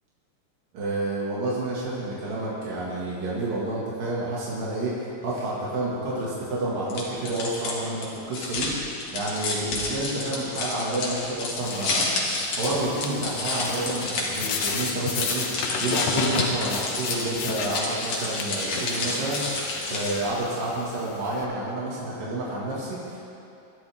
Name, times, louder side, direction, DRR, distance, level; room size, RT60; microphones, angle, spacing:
voice 1, 0.7-12.1 12.6-19.6 19.9-23.2, right 2 dB, 90° right, -6 dB, 3.7 m, -29 dB
sound 1, 6.9-20.3, left 2 dB, 65° left, 3.4 m, -30 dB
sound 2, 11.6-21.4, left 6 dB, 85° left, 2.5 m, -34 dB
22.5 x 11.0 x 3.5 m, 2.7 s
omnidirectional pair, 3.8 m